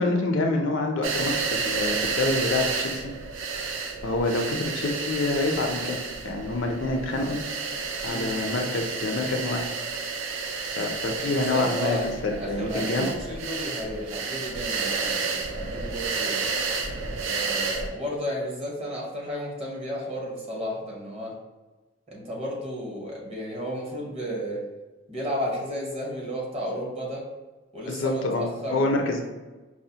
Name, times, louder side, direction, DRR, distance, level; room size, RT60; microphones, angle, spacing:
voice 1, 0.0-3.0 4.0-6.0 6.2-7.4 8.0-9.7 10.8-13.1 27.9-29.2, left 2 dB, 70° left, 3 dB, 0.5 m, -27 dB
sound 1, 1.0-17.9, right 4 dB, 75° right, 0.4 m, -31 dB
voice 2, 11.3-16.4 17.2-21.3 22.1-24.6 25.1-27.2 27.7-29.1, equal, 30° right, -3 dB, 0.9 m, -33 dB
4.8 x 2.0 x 2.7 m, 1.2 s
head